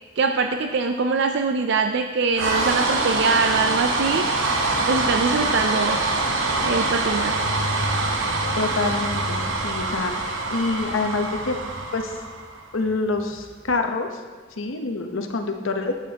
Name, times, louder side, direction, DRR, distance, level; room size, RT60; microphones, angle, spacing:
voice 1, 0.2-4.2 4.8-6.0 6.7-7.4, right 4 dB, 55° right, 6 dB, 0.4 m, -23 dB
sound 1, 2.3-12.6, right 2 dB, 70° right, 1.0 m, -25 dB
sound 2, 7.3-12.4 12.6-13.7, left 1 dB, 25° right, 0.7 m, -35 dB
voice 2, 8.6-11.6 11.9-12.2 12.7-14.2 14.6-15.9, left 3 dB, 80° left, 4 dB, 0.9 m, -26 dB
11.0 x 8.2 x 2.9 m, 1.4 s
head